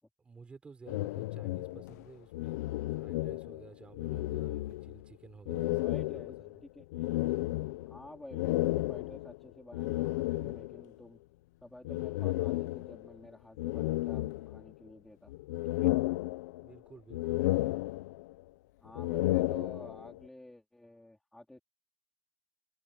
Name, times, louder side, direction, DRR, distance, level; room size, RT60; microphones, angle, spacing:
voice 1, 0.2-6.1 6.4-6.6 16.6-17.7, right 4 dB, 10° right, 3.9 m, -53 dB
sound 1, 0.9-3.7 3.9-5.1 5.5-10.9 11.8-13.1 13.6-14.9 15.3-16.8 17.1-18.4 18.9-20.2, left 18 dB, 85° left, 0.8 m, -33 dB
voice 2, 5.8-6.4 6.6-6.9 7.9-11.2 11.6-15.3 15.6-15.9 18.8-21.6, left 1 dB, 5° left, 4.0 m, -51 dB
cardioid pair, 175°, 9 cm